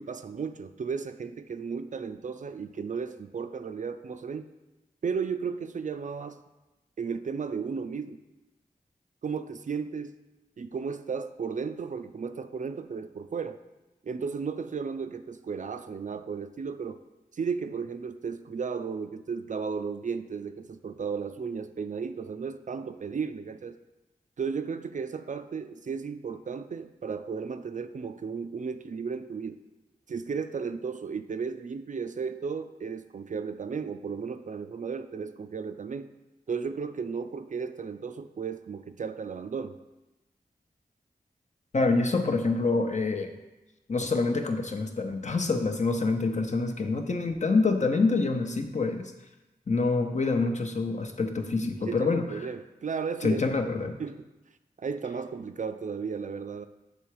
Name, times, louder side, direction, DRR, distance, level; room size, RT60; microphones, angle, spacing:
voice 1, 0.0-4.5 5.0-6.4 7.0-8.2 9.2-10.2 10.6-13.6 14.0-17.0 17.3-23.8 24.4-29.6 30.1-36.1 36.5-39.8 51.8-53.4 54.0-54.3 54.8-56.7, right 5 dB, 55° right, 9 dB, 0.4 m, -34 dB
voice 2, 41.7-43.3 43.9-49.1 49.7-52.2 53.2-53.9, left 3 dB, 50° left, 5 dB, 0.7 m, -26 dB
7.1 x 3.3 x 4.7 m, 1.0 s
cardioid pair, 40°, 16 cm